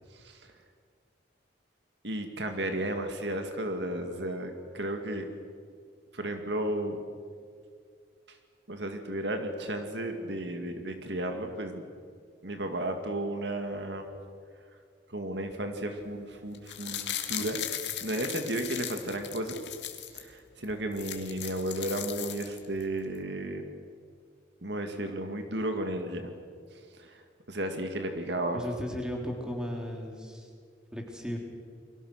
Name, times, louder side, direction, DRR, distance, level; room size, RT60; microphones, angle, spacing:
voice 1, 0.1-0.5 2.0-5.3 6.1-7.0 8.3-8.4 8.7-11.8 12.4-14.1 15.1-17.7 18.0-19.6 20.1-23.6 24.6-26.3 26.7-27.2 27.5-28.6, right 1 dB, 65° right, 5 dB, 2.1 m, -33 dB
sound 1, 16.5-20.2 20.6-20.7 20.9-22.8 23.1-23.2, left 11 dB, 65° left, 2.3 m, -37 dB
voice 2, 28.5-30.5 30.9-31.4, equal, 5° right, 1 dB, 3.7 m, -35 dB
30.0 x 23.0 x 6.5 m, 2.1 s
head